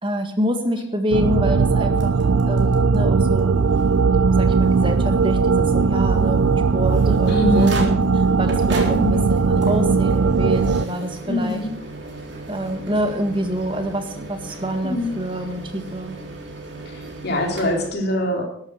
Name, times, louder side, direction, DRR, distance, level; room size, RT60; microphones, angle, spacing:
voice 1, 0.0-3.5 3.9-8.0 8.4-11.6 12.5-16.2, equal, 25° right, 6 dB, 1.7 m, -26 dB
sound 1, 1.1-10.9, right 4 dB, 85° right, 0.5 m, -18 dB
sound 2, 2.0-3.0 3.4-3.5 3.7-3.8 4.5-4.6 6.6-17.9, right 2 dB, 55° right, 3.8 m, -36 dB
voice 2, 7.3-7.8 8.9-9.2 11.3-11.7 14.8-15.1 16.9-18.6, left 1 dB, 50° left, 2 dB, 3.5 m, -23 dB
13.0 x 11.5 x 6.6 m, 0.68 s
head